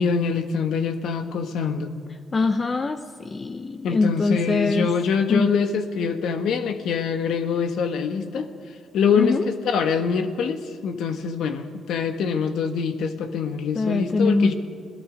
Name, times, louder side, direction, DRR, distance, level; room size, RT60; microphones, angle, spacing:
voice 1, 0.0-1.9 3.8-8.5 8.9-14.5, left 6 dB, 75° left, 7 dB, 1.5 m, -24 dB
voice 2, 2.3-4.9 5.3-5.5 9.2-9.4 13.7-14.5, left 3 dB, 30° left, 9 dB, 0.8 m, -23 dB
28.0 x 18.0 x 5.2 m, 2.3 s
cardioid pair, 90°, 0 cm